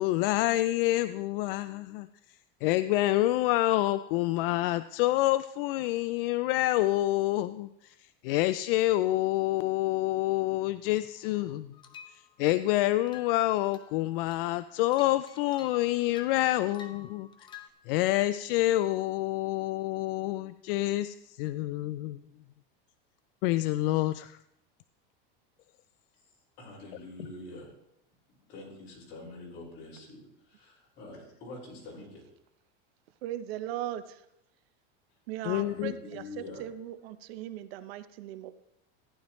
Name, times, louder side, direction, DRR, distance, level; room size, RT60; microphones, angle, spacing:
voice 1, 0.0-2.1 2.6-8.0 8.2-11.7 12.1-17.3 17.9-22.2 23.4-24.4 35.4-35.9, left 16 dB, 70° left, 13 dB, 0.4 m, -27 dB
sound 1, 11.7-12.7 13.1-13.4 13.7-14.0 14.3-17.7, left 7 dB, 15° left, 0.7 m, -50 dB
voice 2, 26.1-27.7 28.5-32.3 35.1-35.2 35.5-36.7, left 2 dB, 40° left, -4 dB, 5.5 m, -46 dB
voice 3, 33.2-34.0 35.3-35.9 36.6-36.7 37.0-38.5, right 12 dB, 85° right, 11 dB, 0.8 m, -37 dB
14.5 x 10.5 x 3.1 m, 0.81 s
supercardioid pair, 160°, 30 cm